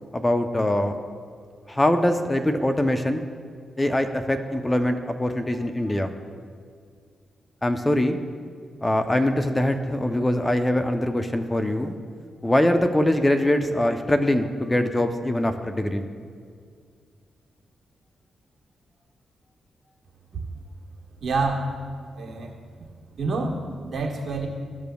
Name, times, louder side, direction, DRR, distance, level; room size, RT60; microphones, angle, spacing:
voice 1, 0.1-1.0 1.7-3.3 3.8-6.1 7.6-8.2 8.8-11.9 12.4-16.1, left 1 dB, 20° left, 7 dB, 0.6 m, -23 dB
voice 2, 21.2-21.8 22.1-22.5 23.2-24.5, right 3 dB, 60° right, -1 dB, 1.5 m, -27 dB
14.0 x 5.1 x 2.3 m, 2.1 s
supercardioid pair, 40°, 0 cm